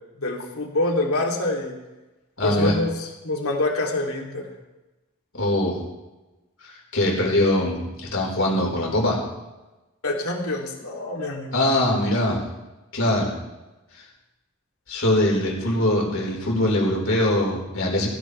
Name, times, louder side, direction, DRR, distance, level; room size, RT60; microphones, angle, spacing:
voice 1, 0.2-1.7 2.4-4.5 10.0-11.6, left 2 dB, 90° left, 0 dB, 3.0 m, -26 dB
voice 2, 2.4-2.8 5.3-5.8 6.6-9.2 11.5-12.4 12.9-13.3 14.9-18.1, left 1 dB, 70° left, -2 dB, 4.5 m, -22 dB
17.5 x 16.0 x 3.4 m, 1.0 s
head